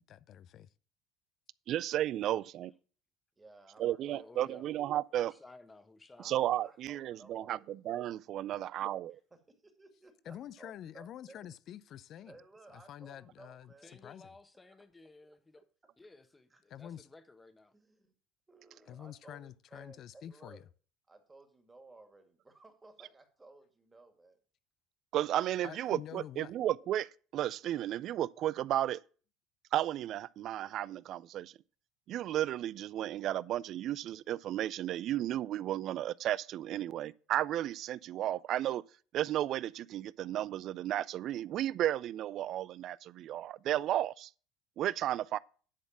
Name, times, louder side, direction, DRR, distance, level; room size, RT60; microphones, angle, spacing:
voice 1, 0.0-0.7 10.2-12.4 12.7-14.3 16.7-17.1 18.9-20.6 25.6-26.5, left 10 dB, 50° left, 0.5 m, -47 dB
voice 2, 1.7-2.7 3.8-5.3 6.2-9.2 25.1-29.0 29.7-31.5 32.1-38.8 39.1-44.3 44.8-45.4, right 12 dB, 55° right, 0.4 m, -33 dB
voice 3, 3.4-4.4 4.6-4.8 6.2-7.6 9.3-11.4 12.3-14.0 14.7-14.8 15.2-15.4 16.5-16.6 17.7-18.1 18.5-20.6 21.1-24.4, right 3 dB, 20° right, 2.2 m, -58 dB
voice 4, 4.0-4.7 5.2-6.4 13.8-15.6 16.0-17.7, left 3 dB, 15° left, 1.3 m, -56 dB
10.0 x 4.2 x 7.4 m
hypercardioid pair, 85°, 0 cm